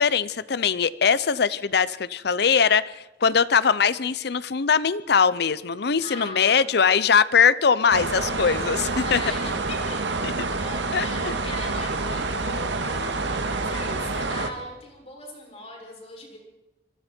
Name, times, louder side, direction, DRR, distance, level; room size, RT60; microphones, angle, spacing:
voice 1, 0.0-2.9 3.2-9.2 10.2-10.3 10.9-11.1, left 6 dB, 65° left, 17 dB, 0.7 m, -21 dB
voice 2, 6.0-7.0 8.9-10.2 10.5-16.4, left 2 dB, 35° left, 0 dB, 6.5 m, -40 dB
sound 1, 7.9-14.5, right 3 dB, 90° right, 1.9 m, -27 dB
26.0 x 22.5 x 4.5 m, 1.0 s
head